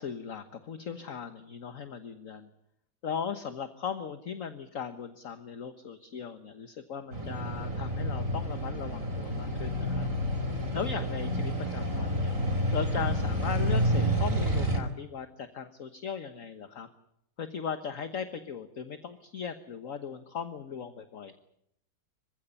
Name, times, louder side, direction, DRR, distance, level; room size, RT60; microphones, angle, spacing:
voice 1, 0.0-2.5 3.0-10.1 10.7-12.3 12.7-16.9 17.4-21.3, left 7 dB, 55° left, 9 dB, 1.6 m, -38 dB
sound 1, 7.1-14.8, equal, 50° right, 4.9 m, -29 dB
26.0 x 16.0 x 9.9 m, 0.76 s
omnidirectional pair, 1.8 m